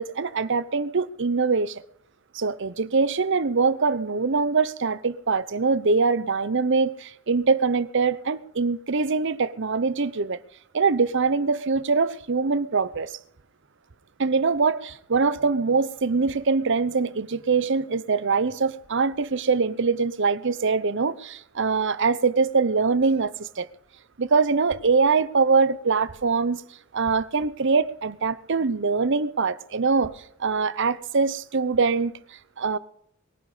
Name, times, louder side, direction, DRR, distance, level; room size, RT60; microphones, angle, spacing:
voice 1, 0.0-1.8 2.3-10.4 10.7-13.1 14.2-23.7 24.2-26.6 26.9-30.1 30.4-32.1 32.6-32.8, right 4 dB, 60° right, 0.8 m, -23 dB
22.5 x 10.5 x 5.0 m
head